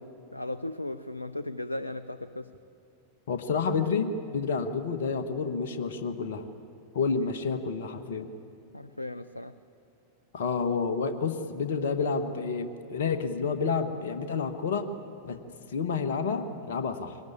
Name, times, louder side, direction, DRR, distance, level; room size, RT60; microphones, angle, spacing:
voice 1, 0.3-2.5 8.7-9.5, left 1 dB, 85° left, 13 dB, 0.6 m, -36 dB
voice 2, 3.3-6.4 6.9-8.3 10.3-14.9 15.2-17.2, left 5 dB, 60° left, 7 dB, 1.3 m, -29 dB
23.0 x 19.0 x 8.7 m, 2.5 s
figure-of-eight pair, 90°, 0 cm